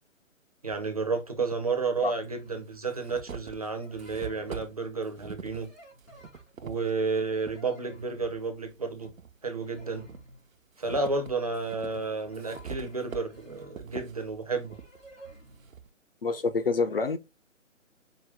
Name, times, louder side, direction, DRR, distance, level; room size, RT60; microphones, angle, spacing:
voice 1, 0.6-5.7 6.6-9.1 9.4-10.1 10.8-14.8, right 4 dB, 30° right, 0.5 m, -31 dB
sound 1, 0.7-0.8 1.9-2.0 2.5-7.6 8.1-9.3 9.8-15.9, right 6 dB, 85° right, 0.7 m, -45 dB
sound 2, 2.2-2.8 3.6-4.8 5.6-6.8 7.2-8.2 8.8-9.2 9.5-10.5 11.2-13.8 14.6-15.7, right 1 dB, 90° left, 2.6 m, -53 dB
voice 2, 16.2-17.2, left 4 dB, 50° left, 0.4 m, -27 dB
4.8 x 2.2 x 3.3 m
figure-of-eight pair, 145°, 39 cm